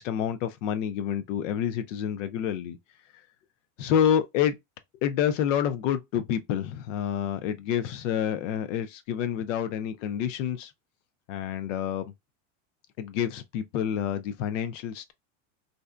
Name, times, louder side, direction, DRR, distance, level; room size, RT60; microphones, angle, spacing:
voice 1, 0.0-2.8 3.8-4.5 5.0-10.7 11.3-12.0 13.0-15.1, left 9 dB, 80° left, 0.5 m, -28 dB
2.6 x 2.1 x 2.3 m
supercardioid pair, 175°, 37 cm